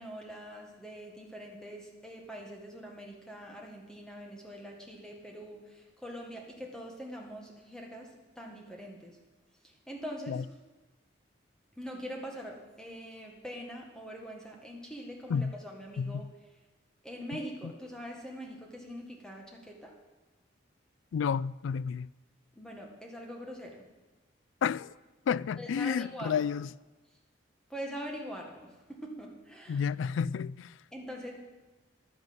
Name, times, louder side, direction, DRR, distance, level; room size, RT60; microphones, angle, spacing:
voice 1, 0.0-8.1 8.4-9.2 9.9-10.4 11.8-16.2 17.0-19.9 22.6-23.9 25.6-26.3 27.7-29.8 30.9-31.3, equal, 5° left, 1.8 m, -43 dB
voice 2, 16.0-16.3 17.6-17.7 21.1-22.1 24.6-24.9 25.3-26.7 29.7-30.8, left 6 dB, 75° left, 0.3 m, -31 dB
11.0 x 9.4 x 7.9 m
head